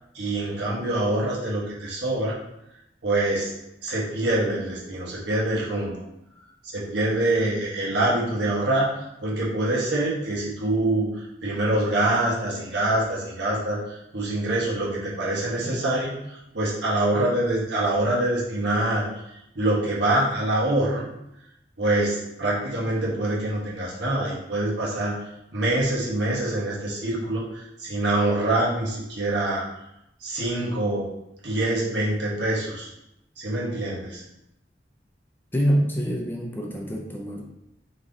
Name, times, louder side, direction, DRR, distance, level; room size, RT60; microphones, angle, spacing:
voice 1, 0.1-2.4 3.0-3.5 3.8-6.0 6.6-19.0 19.5-21.0 21.8-25.1 25.5-29.7 30.2-31.1 31.4-32.9 33.4-34.2, right 1 dB, 80° right, -5 dB, 1.3 m, -25 dB
voice 2, 35.5-37.4, equal, 10° left, 0 dB, 0.6 m, -26 dB
3.7 x 3.1 x 3.9 m, 0.84 s
head